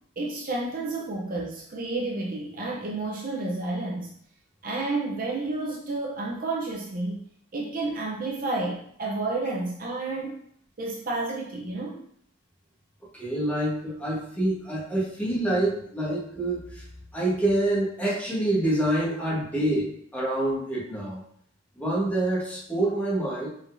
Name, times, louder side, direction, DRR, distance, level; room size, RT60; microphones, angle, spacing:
voice 1, 0.2-4.1 4.6-7.2 7.5-10.4 10.8-12.0, right 2 dB, 45° right, -2 dB, 0.6 m, -30 dB
voice 2, 13.1-16.8 17.1-21.2 21.8-23.5, right 1 dB, 10° left, -7 dB, 1.5 m, -26 dB
5.1 x 3.8 x 2.6 m, 0.65 s
head